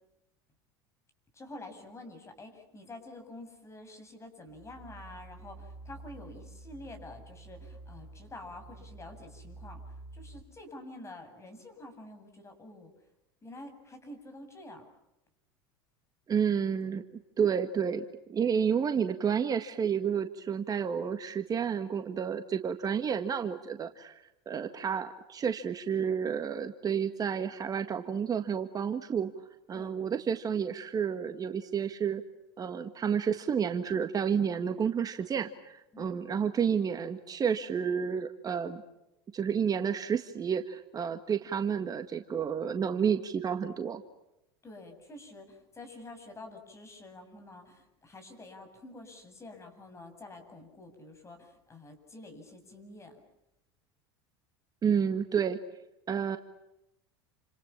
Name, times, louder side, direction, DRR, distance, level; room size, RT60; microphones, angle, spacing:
voice 1, 1.3-12.9 13.4-14.9 29.7-29.9 35.9-36.2 44.6-53.2, left 2 dB, 20° left, 6 dB, 8.0 m, -48 dB
sound 1, 4.5-10.4, right 2 dB, 10° right, 4.3 m, -49 dB
voice 2, 16.3-17.0 17.4-29.3 29.7-32.2 32.6-38.8 39.3-44.0 54.8-55.6 56.1-56.4, right 7 dB, 30° right, 8 dB, 1.7 m, -30 dB
29.5 x 27.0 x 7.3 m, 0.89 s
hypercardioid pair, 100°, 13 cm